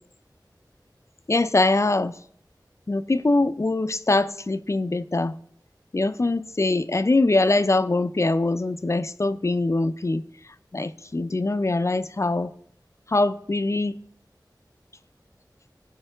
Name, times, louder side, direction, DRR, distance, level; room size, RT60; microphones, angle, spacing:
voice 1, 1.3-2.1 2.9-5.4 5.9-10.2 10.7-12.5 13.1-14.0, left 2 dB, 40° left, 0.4 m, -23 dB
13.5 x 4.5 x 3.4 m
wide cardioid pair, 50°, 8 cm